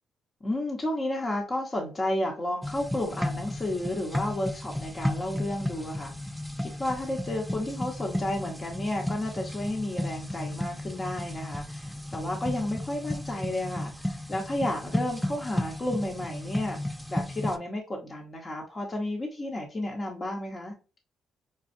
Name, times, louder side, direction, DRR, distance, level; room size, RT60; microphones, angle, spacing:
voice 1, 0.4-6.1 6.6-16.8 17.1-20.7, left 1 dB, 30° left, -1 dB, 0.9 m, -32 dB
sound 1, 2.6-17.6, left 1 dB, ahead, 0.4 m, -34 dB
5.3 x 2.2 x 2.6 m, 0.33 s
cardioid pair, 90°, 0 cm